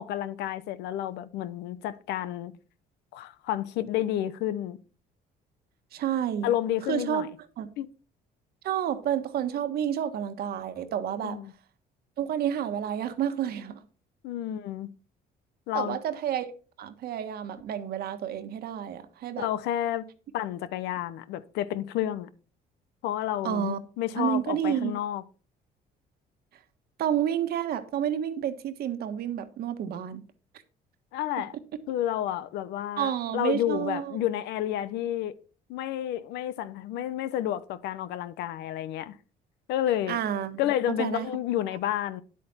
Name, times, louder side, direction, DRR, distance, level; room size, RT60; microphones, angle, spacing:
voice 1, 0.0-2.5 3.1-4.8 6.4-7.3 7.8-7.9 11.2-11.5 14.2-14.9 15.7-16.0 19.4-20.1 20.3-22.3 23.0-25.2 31.1-31.6 31.9-35.3 35.7-39.1 39.7-40.2 40.6-42.2, left 12 dB, 85° left, 0.9 m, -30 dB
voice 2, 5.9-6.5 6.9-7.3 7.6-7.7 8.6-11.4 12.2-13.8 15.7-16.5 16.8-19.5 23.4-23.8 24.2-24.9 27.0-30.2 33.0-34.2 40.1-40.6 41.0-41.3, right 10 dB, 65° right, 1.5 m, -30 dB
10.0 x 8.5 x 4.3 m
cardioid pair, 110°, 17 cm